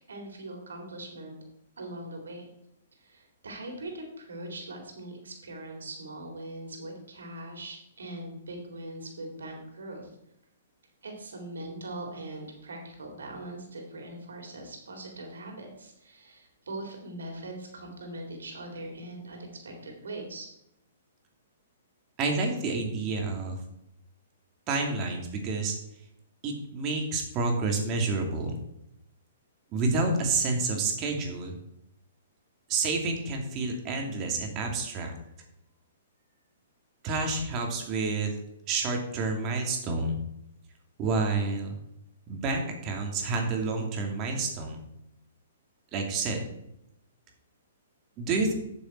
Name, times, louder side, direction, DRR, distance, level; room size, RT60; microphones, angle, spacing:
voice 1, 0.0-1.4 1.8-2.5 3.0-10.1 11.0-20.5, right 1 dB, 90° right, 2 dB, 3.4 m, -41 dB
voice 2, 22.2-23.6 24.7-25.7 26.4-28.5 29.7-31.6 32.7-35.1 37.0-38.3 38.7-40.2 41.0-41.8 42.3-44.8 45.9-46.4 48.2-48.5, right 3 dB, 30° right, 2 dB, 2.5 m, -29 dB
11.5 x 7.1 x 4.6 m, 0.81 s
hypercardioid pair, 140°, 0 cm